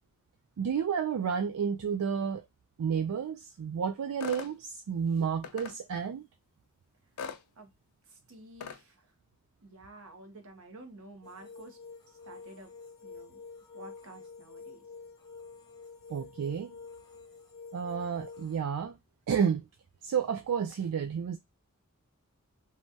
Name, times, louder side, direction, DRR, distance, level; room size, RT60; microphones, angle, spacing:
voice 1, 0.6-2.5 2.8-6.3 16.1-16.8 17.7-19.0 19.3-19.7 20.0-21.4, right 7 dB, 90° right, 0.4 m, -31 dB
sound 1, 4.2-4.5 5.4-5.8 7.2-7.4 8.6-8.8, left 6 dB, 75° left, 0.5 m, -39 dB
voice 2, 8.1-9.1 9.6-11.8 12.1-12.7 13.0-13.4 13.7-14.8, right 2 dB, 70° right, 1.0 m, -51 dB
sound 2, 11.2-18.6, left 4 dB, 20° left, 0.6 m, -48 dB
3.1 x 2.3 x 2.6 m
head